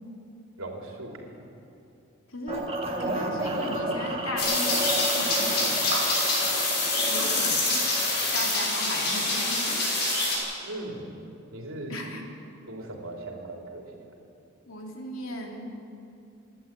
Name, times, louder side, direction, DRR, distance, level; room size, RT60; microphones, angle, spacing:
voice 1, 0.6-1.4 5.9-6.1 8.1-8.4 10.6-11.2 11.5-12.0 12.7-14.1, right 2 dB, 85° right, 1 dB, 3.6 m, -39 dB
voice 2, 2.3-2.7 3.0-4.8 5.2-5.6 7.1-7.8 8.3-9.9 11.9-12.3 14.7-15.7, left 1 dB, 80° left, 1 dB, 3.1 m, -36 dB
sound 1, 2.5-8.4, right 1 dB, 25° right, 1.8 m, -32 dB
sound 2, 4.4-10.4, left 2 dB, 50° left, 6.1 m, -26 dB
27.0 x 11.5 x 9.1 m, 2.7 s
head